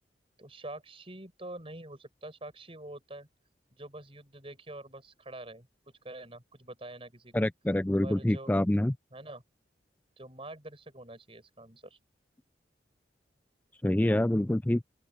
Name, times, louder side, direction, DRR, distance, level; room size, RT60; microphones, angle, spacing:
voice 1, 0.4-3.3 3.7-5.7 6.0-7.4 8.0-8.5 9.1-9.4 10.2-12.0, right 1 dB, 30° right, 7.9 m, -45 dB
voice 2, 7.3-8.9 13.8-14.8, left 1 dB, 10° left, 0.4 m, -26 dB
open air
head